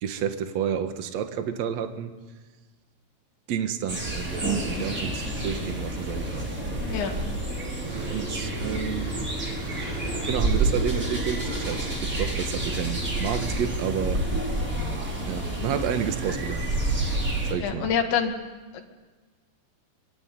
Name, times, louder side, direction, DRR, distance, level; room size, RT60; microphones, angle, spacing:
voice 1, 0.0-2.1 3.5-4.5 4.8-6.5 7.8-9.1 10.2-14.3 15.3-16.7 17.5-17.9, right 8 dB, 75° right, 7 dB, 1.5 m, -30 dB
sound 1, 3.9-17.5, right 2 dB, 15° right, 4.3 m, -29 dB
sound 2, 4.3-14.6, right 1 dB, 35° right, 6.2 m, -37 dB
voice 2, 6.8-7.2 8.6-8.8 17.5-18.3 18.7-18.8, left 7 dB, 70° left, 4 dB, 4.3 m, -27 dB
25.0 x 24.5 x 9.5 m, 1.3 s
omnidirectional pair, 5.7 m